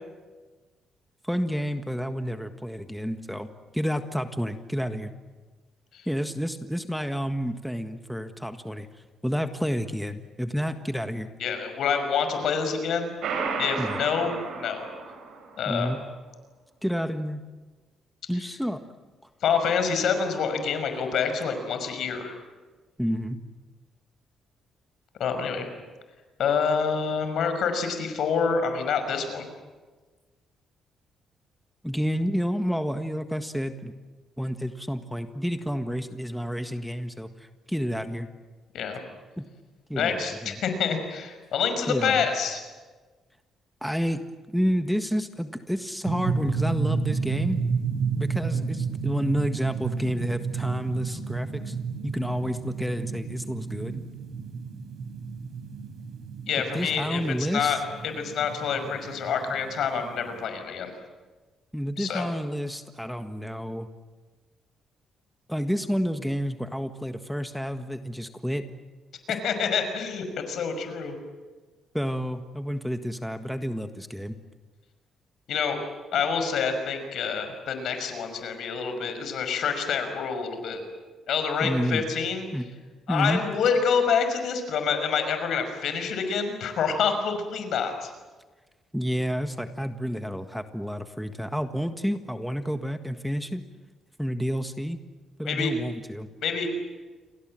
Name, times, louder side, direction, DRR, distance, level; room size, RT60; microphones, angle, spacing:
voice 1, 1.2-3.5 3.7-5.1 6.1-8.9 9.2-11.3 13.8-14.0 15.7-16.0 16.8-17.4 18.3-18.8 23.0-23.4 31.8-33.9 34.4-38.3 39.4-39.5 39.9-40.2 40.4-40.5 41.9-42.2 43.8-47.6 48.2-51.7 52.0-54.0 56.7-57.8 61.7-63.9 65.5-68.7 71.9-74.3 81.6-82.0 82.5-82.7 83.1-83.4 88.9-93.6 94.2-95.0 95.4-96.3, equal, ahead, 7 dB, 1.6 m, -29 dB
voice 2, 11.4-13.1 13.6-14.9 15.6-15.9 19.4-22.4 25.2-25.7 26.4-29.5 38.7-39.0 39.9-42.6 56.5-60.9 62.0-62.3 69.3-71.1 75.5-75.8 76.1-80.8 81.3-82.5 83.1-88.1 95.5-95.7 96.4-96.7, left 6 dB, 70° left, 8 dB, 5.7 m, -27 dB
sound 1, 13.2-15.6, right 5 dB, 75° right, 6.6 m, -32 dB
sound 2, 46.0-60.5, right 5 dB, 60° right, 5.8 m, -32 dB
29.0 x 23.5 x 7.8 m, 1.3 s
cardioid pair, 90°, 0 cm